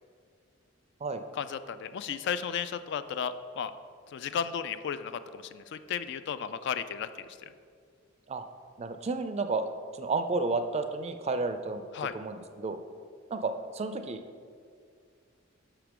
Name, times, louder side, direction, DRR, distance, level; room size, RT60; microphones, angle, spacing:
voice 1, 1.3-3.7 4.1-7.5 11.9-12.1, left 7 dB, 60° left, 12 dB, 0.3 m, -34 dB
voice 2, 8.8-9.7 10.0-11.8 12.1-12.8 13.3-14.2, right 3 dB, 30° right, 9 dB, 0.4 m, -31 dB
5.7 x 5.1 x 6.0 m, 2.2 s
head